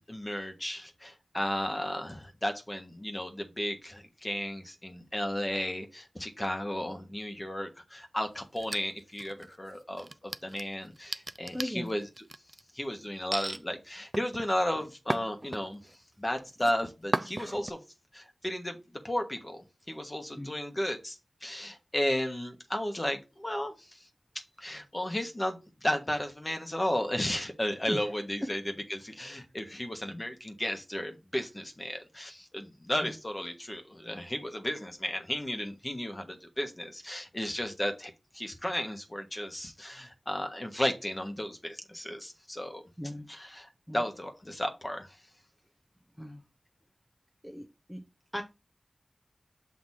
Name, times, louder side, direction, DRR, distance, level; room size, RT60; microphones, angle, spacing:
voice 1, 0.1-12.1 12.7-15.9 16.2-17.8 18.1-18.8 19.0-19.6 19.9-24.1 24.6-28.6 28.9-42.8 43.3-45.2, left 1 dB, 30° left, 5 dB, 1.4 m, -34 dB
sound 1, 8.6-9.5 10.0-12.6 13.3-13.6 14.1-15.9 16.3-16.7 17.1-17.7, right 2 dB, 35° right, 0.4 m, -35 dB
voice 2, 11.5-11.9 20.4-20.5 27.9-28.0 28.4-28.5 33.0-33.2 43.0-43.3 43.9-44.0 46.2-46.4 47.4-48.0 48.3-48.4, equal, 5° left, 4 dB, 0.9 m, -37 dB
6.4 x 3.0 x 5.6 m, 0.27 s
cardioid pair, 45°, 0 cm